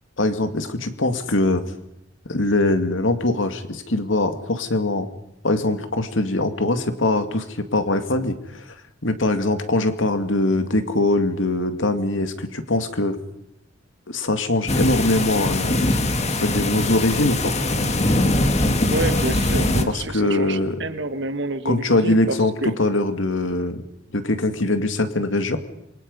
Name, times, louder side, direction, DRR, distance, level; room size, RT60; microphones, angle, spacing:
voice 1, 0.2-1.6 2.3-5.1 5.4-8.6 9.0-13.2 14.1-15.9 16.3-17.5 19.9-20.9 21.6-23.8 24.1-25.6, left 2 dB, 90° left, 8 dB, 2.3 m, -22 dB
sound 1, 14.7-19.9, left 1 dB, 35° left, 1.9 m, -21 dB
voice 2, 18.9-22.7, right 2 dB, 65° right, 10 dB, 1.5 m, -28 dB
27.5 x 23.5 x 5.5 m, 0.79 s
head